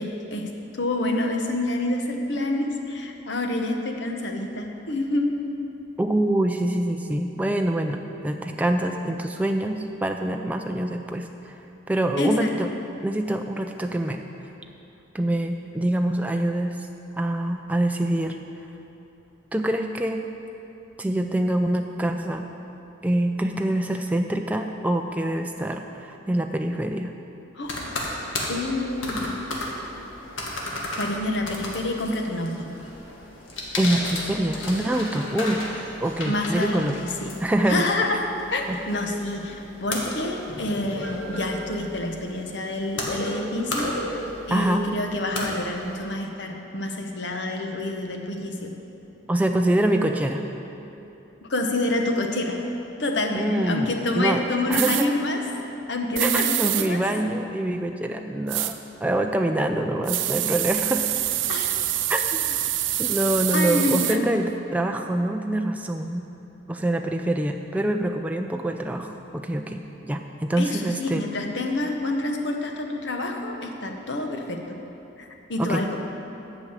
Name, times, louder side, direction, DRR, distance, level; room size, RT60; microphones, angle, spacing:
voice 1, 0.0-5.3 12.2-12.5 27.5-28.0 28.5-29.3 31.0-32.7 36.3-37.4 37.7-38.2 38.5-39.6 39.8-43.9 44.5-48.7 51.4-52.6 53.0-55.4 55.9-57.0 61.5-61.8 63.5-64.3 70.6-74.8 75.2-76.0, left 2 dB, 65° left, 3 dB, 1.0 m, -27 dB
voice 2, 6.0-11.6 11.9-12.7 13.0-14.2 15.1-16.8 17.2-18.4 19.5-20.3 21.0-22.5 23.0-27.1 33.8-35.6 36.0-37.0 37.4-37.9 38.7-38.8 44.5-44.9 49.3-50.4 53.3-55.1 56.2-61.1 62.1-62.6 63.0-66.2 66.7-71.3 75.6-76.0, right 1 dB, 10° right, 4 dB, 0.3 m, -25 dB
sound 1, 27.6-46.0, left 1 dB, 85° left, 1.6 m, -34 dB
sound 2, 54.7-55.1 56.2-56.9 58.5-58.7 60.1-64.2, right 13 dB, 75° right, 0.5 m, -26 dB
8.6 x 6.2 x 8.2 m, 2.9 s
head